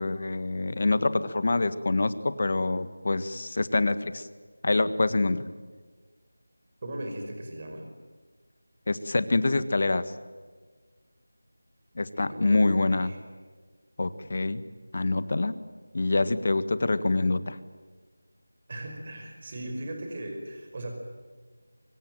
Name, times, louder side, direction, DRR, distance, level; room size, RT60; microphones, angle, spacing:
voice 1, 0.0-4.3 4.6-5.4 8.9-10.0 12.0-13.1 14.0-14.6 14.9-15.5 15.9-17.6, left 2 dB, 45° left, 13 dB, 1.6 m, -25 dB
voice 2, 6.8-7.9 12.2-13.2 18.7-20.9, right 1 dB, 30° right, 4 dB, 5.3 m, -38 dB
24.5 x 22.5 x 9.0 m, 1.4 s
figure-of-eight pair, 175°, 0 cm